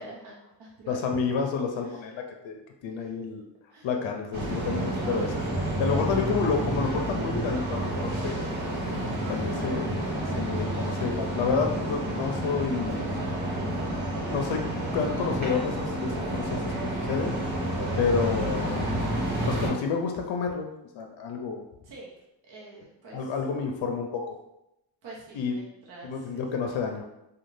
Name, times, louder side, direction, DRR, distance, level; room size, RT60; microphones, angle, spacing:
voice 1, 0.0-1.0 1.8-2.0 2.9-3.1 3.7-3.9 5.9-6.1 21.8-22.1 22.4-23.3 25.0-26.8, right 2 dB, 55° right, -4 dB, 0.7 m, -47 dB
voice 2, 0.9-3.4 3.8-5.4 5.8-8.4 9.3-10.1 10.3-13.1 14.3-17.4 18.0-18.9 19.5-20.7 20.9-21.6 23.1-24.4 25.3-25.5 26.0-27.0, left 5 dB, 75° left, 3 dB, 0.5 m, -29 dB
sound 1, 4.3-19.7, right 1 dB, 75° right, 1.2 m, -30 dB
2.4 x 2.3 x 3.1 m, 0.87 s
cardioid pair, 80°, 46 cm